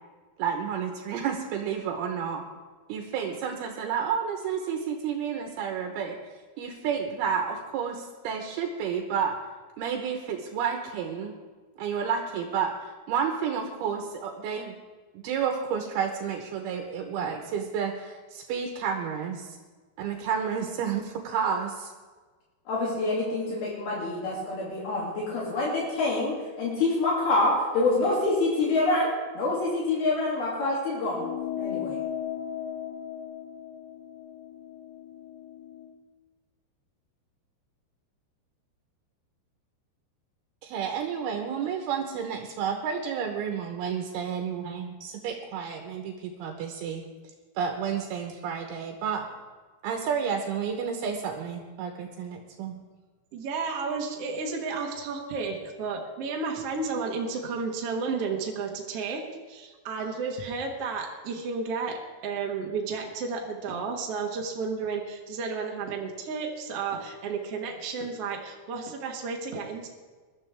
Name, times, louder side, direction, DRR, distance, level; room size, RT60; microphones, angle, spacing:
voice 1, 0.4-2.4 2.9-6.2 6.6-9.4 9.8-11.3 11.8-14.8 15.1-19.6 20.0-21.9 40.6-47.1 47.6-49.3 49.8-52.7, right 7 dB, 80° right, 3 dB, 2.9 m, -31 dB
voice 2, 22.7-31.3 31.6-32.0, left 2 dB, 70° left, -5 dB, 4.4 m, -26 dB
sound 1, 31.1-35.9, left 9 dB, 55° left, 1.9 m, -36 dB
voice 3, 53.3-59.2 59.5-69.9, right 4 dB, 60° right, 1 dB, 1.6 m, -32 dB
21.5 x 12.5 x 3.5 m, 1.4 s
omnidirectional pair, 4.7 m